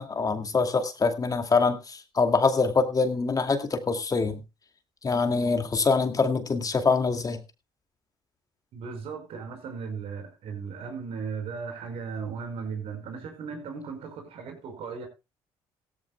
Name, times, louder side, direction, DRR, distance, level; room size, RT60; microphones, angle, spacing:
voice 1, 0.0-4.4 5.0-7.4, left 4 dB, 35° left, 2.4 m, -24 dB
voice 2, 8.7-15.1, right 5 dB, 70° right, 5.2 m, -36 dB
16.5 x 14.5 x 2.3 m
supercardioid pair, 70°, 11 cm